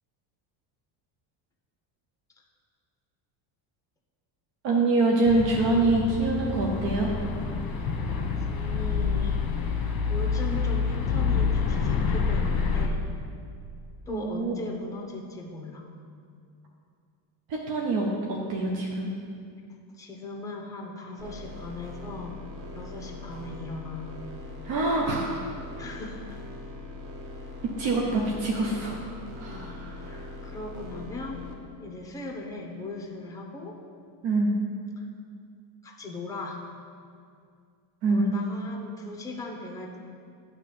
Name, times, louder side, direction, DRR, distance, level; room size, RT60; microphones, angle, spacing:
voice 1, 4.6-7.1 14.1-14.5 17.5-19.1 24.6-25.4 27.8-29.0 29.4-30.2 34.2-34.5 38.0-38.2, right 2 dB, 65° right, -2 dB, 1.0 m, -25 dB
sound 1, 5.2-12.9, left 5 dB, 45° left, 1.0 m, -27 dB
voice 2, 8.5-9.5 10.1-13.0 14.1-15.8 19.9-22.4 22.7-24.2 25.8-26.4 28.0-28.1 29.5-31.4 31.8-33.8 35.8-36.6 38.1-40.0, left 2 dB, 5° left, 0 dB, 0.8 m, -38 dB
sound 2, 21.2-31.5, left 2 dB, 40° right, 1.0 m, -41 dB
8.7 x 3.3 x 6.6 m, 2.3 s
cardioid pair, 130°, 48 cm